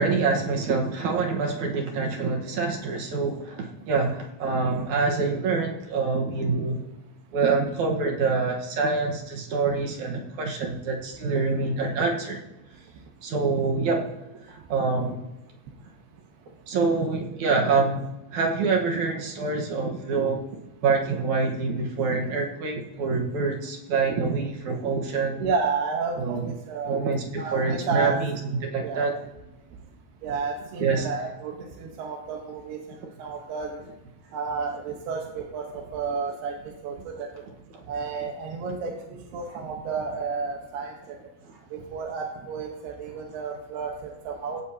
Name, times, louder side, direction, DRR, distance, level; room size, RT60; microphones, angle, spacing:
voice 1, 0.0-6.9 7.3-12.4 13.2-14.1 14.5-15.2 16.7-20.4 20.8-25.4 26.2-26.5 26.9-28.3 28.6-29.2 30.8-31.1, right 4 dB, 60° right, 1 dB, 2.4 m, -26 dB
voice 2, 25.4-27.0 27.4-28.2 28.8-29.1 30.2-31.5 31.8-32.8 33.2-33.8 34.3-36.6 36.8-37.3 37.9-40.9 41.7-44.6, right 5 dB, 80° right, 0 dB, 3.3 m, -31 dB
16.5 x 16.5 x 2.9 m, 0.99 s
omnidirectional pair, 4.6 m